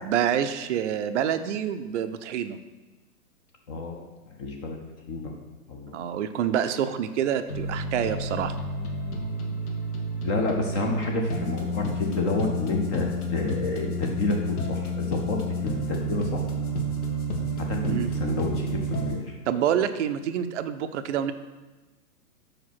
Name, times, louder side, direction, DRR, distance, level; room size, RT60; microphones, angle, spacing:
voice 1, 0.0-2.6 5.9-8.6 17.9-18.1 19.5-21.3, right 9 dB, 55° right, 9 dB, 0.5 m, -27 dB
voice 2, 3.7-4.8 5.1-5.3 5.7-6.0 10.2-16.4 17.6-19.2, left 3 dB, 20° left, 1 dB, 0.5 m, -30 dB
sound 1, 7.5-19.2, right 1 dB, 70° left, 1.3 m, -30 dB
5.0 x 4.6 x 5.9 m, 1.1 s
hypercardioid pair, 130°, 45 cm